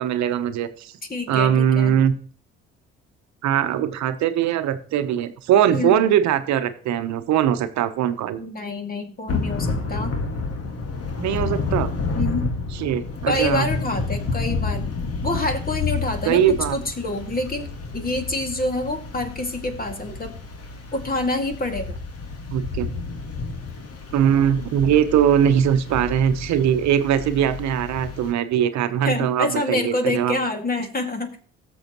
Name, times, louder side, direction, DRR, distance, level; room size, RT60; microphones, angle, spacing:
voice 1, 0.0-0.9 1.3-2.2 3.4-8.4 11.1-11.9 12.8-13.7 16.3-16.8 22.5-22.9 24.1-30.4, right 9 dB, 65° right, 10 dB, 1.0 m, -21 dB
voice 2, 1.1-2.0 5.7-6.0 8.4-10.1 12.1-12.5 13.3-14.9 15.2-17.7 17.9-20.4 20.9-22.0 29.0-31.4, left 2 dB, 30° left, 5 dB, 2.1 m, -27 dB
Thunder / Rain, 9.3-28.3, left 4 dB, 50° left, 1.8 m, -30 dB
18.0 x 7.0 x 3.0 m, 0.43 s
hypercardioid pair, 55°, 30 cm